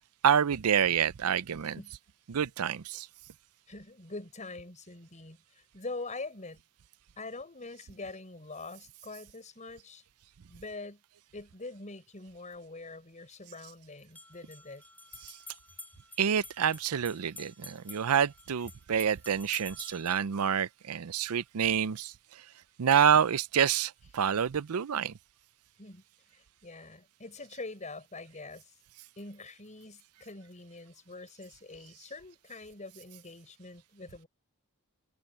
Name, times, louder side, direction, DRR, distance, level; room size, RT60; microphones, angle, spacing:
voice 1, 0.2-1.8 2.3-3.1 15.2-15.3 16.2-22.1 22.8-25.1, right 8 dB, 75° right, 0.5 m, -27 dB
voice 2, 3.7-6.6 7.2-10.0 10.5-11.0 11.3-14.8 25.8-26.0 26.3-28.7 29.2-34.3, left 3 dB, 35° left, 5.7 m, -44 dB
sound 1, 12.4-12.5 14.0-20.2, left 2 dB, 10° left, 6.1 m, -49 dB
head